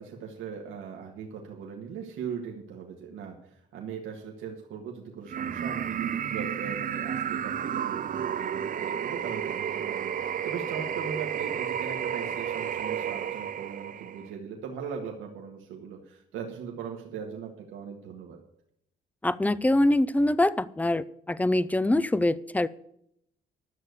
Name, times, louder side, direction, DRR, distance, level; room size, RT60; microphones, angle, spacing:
voice 1, 0.0-18.4, right 6 dB, 90° right, 0 dB, 1.8 m, -39 dB
sound 1, 5.3-14.3, right 9 dB, 45° right, 0.5 m, -32 dB
voice 2, 19.2-22.7, left 1 dB, 10° left, 17 dB, 0.6 m, -24 dB
12.0 x 6.6 x 8.1 m, 0.74 s
cardioid pair, 90°, 20 cm